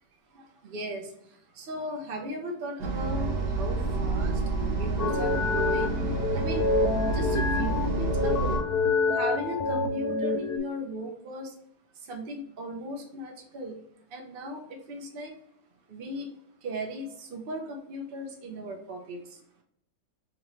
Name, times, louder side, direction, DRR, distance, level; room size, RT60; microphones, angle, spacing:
voice 1, 0.3-5.9 6.3-6.7 7.1-11.5 11.9-13.8 14.1-15.4 15.9-16.3 16.6-19.4, equal, 45° right, 2 dB, 0.8 m, -37 dB
sound 1, 2.8-8.6, right 3 dB, 80° right, 1.5 m, -29 dB
sound 2, 5.0-10.6, left 3 dB, 65° left, 1.1 m, -27 dB
5.0 x 2.9 x 3.1 m, 0.72 s
omnidirectional pair, 1.8 m